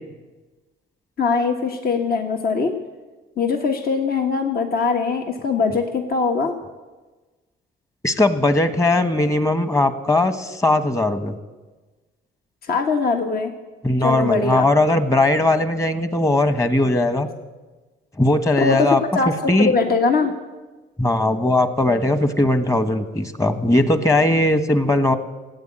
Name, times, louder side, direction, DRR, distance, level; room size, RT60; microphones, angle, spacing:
voice 1, 1.2-2.7 3.4-6.5 12.6-13.5 14.0-14.6 18.6-20.3, left 4 dB, 50° left, 4 dB, 1.6 m, -21 dB
voice 2, 8.0-11.3 13.8-17.3 18.2-19.0 19.5-19.7 21.0-25.2, left 2 dB, 15° left, 10 dB, 1.4 m, -19 dB
15.5 x 8.8 x 8.9 m, 1.2 s
cardioid pair, 90°, 20 cm